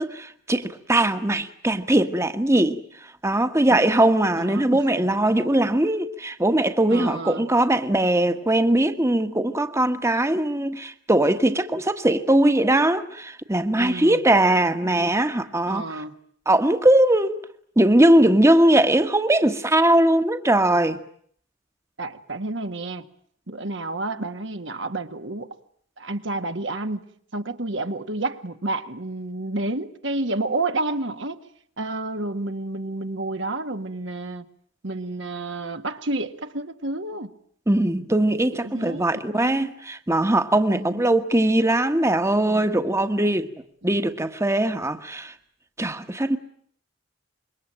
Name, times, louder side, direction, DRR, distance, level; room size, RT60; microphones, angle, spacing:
voice 1, 0.0-2.8 3.2-16.0 16.4-17.4 17.8-21.0 37.7-43.5 43.8-45.3 45.8-46.4, right 1 dB, 15° right, 1.4 m, -20 dB
voice 2, 4.4-4.8 6.9-7.5 13.7-14.2 15.7-16.1 22.0-23.0 23.5-25.6 26.0-27.0 27.3-31.4 31.8-34.5 34.8-37.3 38.6-39.7 40.7-41.0, right 2 dB, 70° right, 1.8 m, -30 dB
26.5 x 23.0 x 8.9 m
head